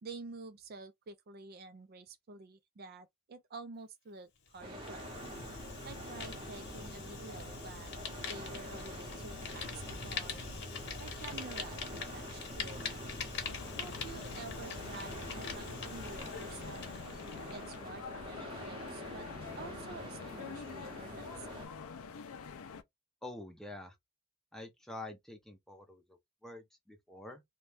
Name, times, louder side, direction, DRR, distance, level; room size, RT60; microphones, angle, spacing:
voice 1, 0.0-5.1 5.8-7.9 8.3-10.5 11.0-13.0 13.7-16.8 17.5-19.3 19.5-21.7, right 3 dB, 45° right, 0.4 m, -49 dB
Fire, 4.5-17.8, left 5 dB, 55° left, 0.9 m, -43 dB
sound 1, 4.6-21.7, equal, 25° right, 0.8 m, -47 dB
sound 2, 13.5-22.8, left 5 dB, 80° left, 0.5 m, -47 dB
voice 2, 23.2-24.0 24.5-27.4, left 2 dB, ahead, 0.6 m, -47 dB
2.5 x 2.2 x 3.2 m
head